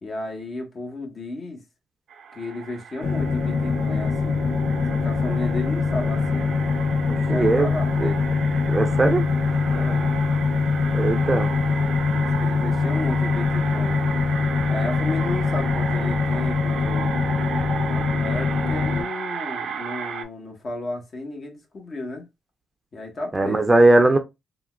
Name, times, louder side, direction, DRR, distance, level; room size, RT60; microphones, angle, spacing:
voice 1, 0.0-1.6 2.3-4.5 4.9-6.6 7.3-8.3 9.7-10.2 12.1-14.0 14.7-17.1 17.9-22.3 22.9-23.9, left 2 dB, 40° left, 1.2 m, -33 dB
sound 1, 2.1-20.2, right 7 dB, 65° right, 0.5 m, -34 dB
sound 2, 3.0-19.0, left 4 dB, 85° left, 0.9 m, -23 dB
voice 2, 7.1-7.7 8.0-8.1 8.7-9.2 10.9-11.5 23.3-24.2, right 2 dB, 20° right, 0.6 m, -19 dB
3.6 x 2.5 x 2.3 m
cardioid pair, 90°, 0 cm